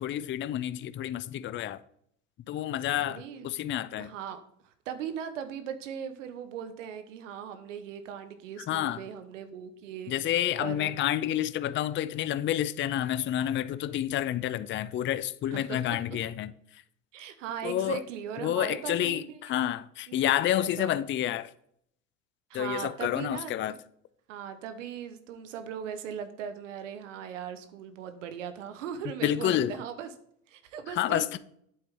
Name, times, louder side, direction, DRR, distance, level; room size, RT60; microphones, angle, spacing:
voice 1, 0.0-1.8 2.5-4.1 8.7-9.0 10.1-16.5 17.6-18.0 18.4-21.5 22.5-23.7 29.2-29.7 30.9-31.4, left 12 dB, 30° left, 0.5 m, -29 dB
voice 2, 3.0-3.5 4.0-4.4 4.6-10.1 10.6-10.9 15.5-16.2 17.1-19.3 20.5-20.9 22.5-23.5 24.3-30.1 30.5-31.4, right 8 dB, 85° right, 1.2 m, -39 dB
8.5 x 7.8 x 3.7 m
hypercardioid pair, 90°, 37 cm